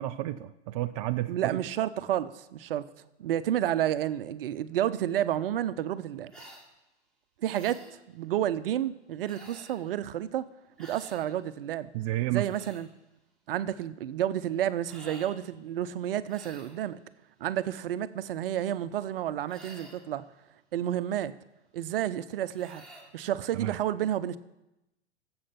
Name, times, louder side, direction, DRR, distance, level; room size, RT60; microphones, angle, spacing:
voice 1, 0.0-1.6 11.9-12.5 23.5-23.8, right 15 dB, 30° right, 0.4 m, -31 dB
voice 2, 1.3-2.9 3.2-6.3 7.4-7.8 8.1-10.5 10.8-11.9 12.3-12.9 13.5-17.0 17.4-20.2 20.7-21.3 21.7-22.8 23.1-24.4, right 11 dB, 55° right, 0.8 m, -30 dB
sound 1, 6.3-6.7 7.5-8.0 9.2-9.8 10.8-11.3 12.2-12.8 14.8-15.4 16.3-16.8 19.5-20.1 22.5-23.1, right 2 dB, ahead, 3.0 m, -50 dB
16.5 x 7.9 x 5.9 m
figure-of-eight pair, 110°, 34 cm